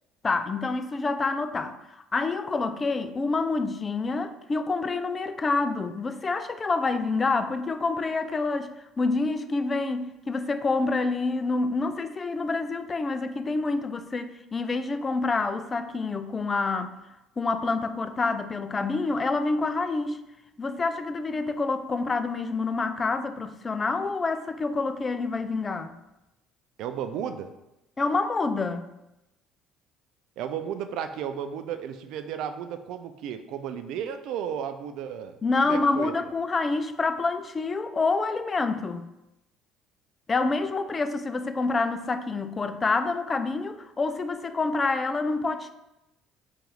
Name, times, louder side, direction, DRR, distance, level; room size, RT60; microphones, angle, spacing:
voice 1, 0.2-8.7 9.0-17.0 17.4-20.2 20.6-25.9 28.0-28.9 35.4-39.1 40.3-45.7, left 3 dB, 30° left, 9 dB, 0.3 m, -27 dB
voice 2, 26.8-27.5 30.4-35.3 35.7-36.1, right 8 dB, 60° right, 9 dB, 0.3 m, -33 dB
4.0 x 2.5 x 4.0 m, 0.91 s
hypercardioid pair, 55°, 0 cm